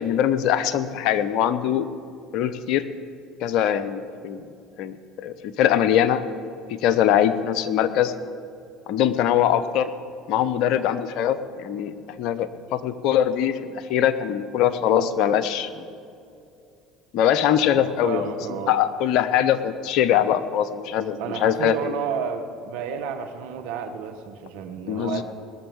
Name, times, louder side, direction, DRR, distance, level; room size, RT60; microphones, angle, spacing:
voice 1, 0.0-1.9 2.3-2.9 3.4-4.4 4.8-5.0 5.2-6.2 6.7-8.1 8.9-9.9 10.3-15.8 17.1-18.2 18.7-21.9 24.9-25.2, left 10 dB, 65° left, 12 dB, 0.8 m, -22 dB
voice 2, 17.7-18.8 21.2-25.2, right 7 dB, 75° right, 7 dB, 1.3 m, -31 dB
20.0 x 7.1 x 7.0 m, 2.6 s
hypercardioid pair, 70°, 0 cm